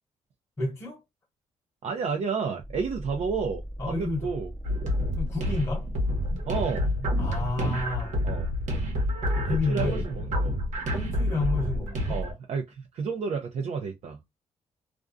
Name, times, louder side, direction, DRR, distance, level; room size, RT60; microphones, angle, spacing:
voice 1, 0.6-1.0 3.8-4.3 5.2-5.9 7.2-8.1 9.5-10.0 10.9-12.2, left 2 dB, 25° left, 0.9 m, -30 dB
voice 2, 1.8-4.5 6.5-7.0 8.2-8.4 9.5-10.6 12.1-14.2, right 5 dB, 65° right, 0.5 m, -31 dB
sound 1, 2.6-11.3, right 1 dB, ahead, 0.5 m, -40 dB
sound 2, 4.6-12.3, left 1 dB, 80° right, 1.0 m, -28 dB
2.4 x 2.2 x 2.4 m
cardioid pair, 120°, 12 cm